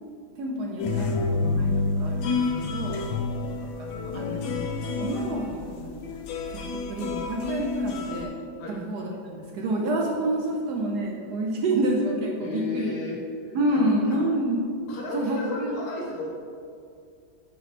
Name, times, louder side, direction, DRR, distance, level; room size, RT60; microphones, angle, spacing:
voice 1, 0.4-1.7 2.0-3.0 3.8-4.7 5.0-5.5 5.8-6.0 6.3-8.3 8.7-12.9 13.5-14.6 15.1-15.7, right 1 dB, 70° right, -1 dB, 1.1 m, -28 dB
sound 1, 0.8-8.3, left 3 dB, 75° left, 1.3 m, -29 dB
voice 2, 12.4-13.8 14.1-14.2 14.9-16.4, left 2 dB, 45° left, -3 dB, 1.4 m, -34 dB
9.2 x 3.1 x 4.2 m, 2.3 s
omnidirectional pair, 2.2 m